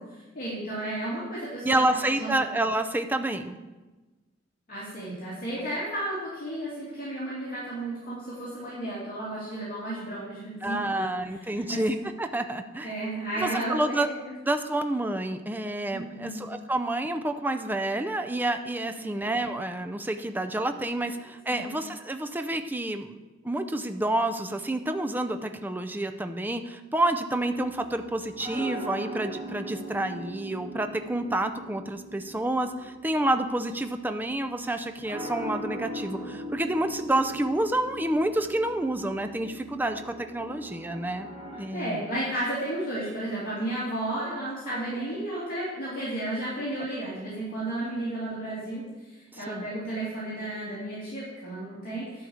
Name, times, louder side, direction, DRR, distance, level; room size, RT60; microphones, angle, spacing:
voice 1, 0.0-2.3 4.7-11.1 11.5-11.8 12.8-14.3 15.9-16.4 19.0-19.3 21.5-21.7 41.7-52.3, right 1 dB, 45° left, -9 dB, 2.8 m, -33 dB
voice 2, 1.6-3.6 10.6-12.9 13.4-14.1 14.4-23.2 23.4-41.3 41.6-42.0 46.8-46.9 49.5-49.7, right 1 dB, 10° right, 7 dB, 0.5 m, -29 dB
sound 1, 27.5-41.6, equal, 30° right, 2.4 m, -40 dB
11.0 x 4.8 x 7.2 m, 1.2 s
head